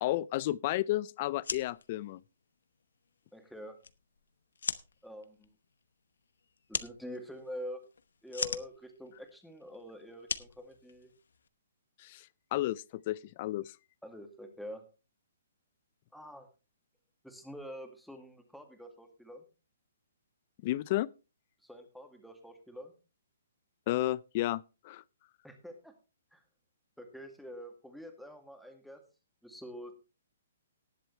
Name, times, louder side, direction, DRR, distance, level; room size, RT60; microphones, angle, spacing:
voice 1, 0.0-2.2 12.0-13.7 20.6-21.1 23.9-25.0, left 16 dB, 35° left, 0.5 m, -32 dB
sound 1, 1.3-11.5, left 6 dB, 80° left, 0.9 m, -42 dB
voice 2, 3.3-3.8 5.0-5.5 6.7-7.8 8.2-11.1 14.0-14.9 16.1-16.5 17.2-19.5 21.6-22.9 25.4-25.9 26.3-26.4 27.0-29.0 29.4-29.9, equal, ahead, 2.0 m, -46 dB
19.0 x 7.6 x 3.3 m
hypercardioid pair, 155°, 0 cm